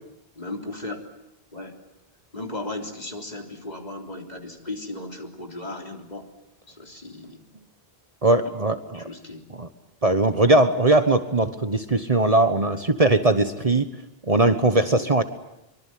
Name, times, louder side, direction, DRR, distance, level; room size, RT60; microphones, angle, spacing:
voice 1, 0.4-1.0 1.5-1.8 2.3-6.3 6.7-7.4 8.4-8.5 8.9-9.4 14.9-15.1, left 2 dB, 45° left, 2 dB, 3.8 m, -36 dB
voice 2, 8.2-9.0 9.6-9.7 10.0-13.9 14.3-15.2, right 2 dB, 35° right, 9 dB, 1.3 m, -20 dB
24.5 x 23.5 x 9.4 m, 0.87 s
omnidirectional pair, 1.0 m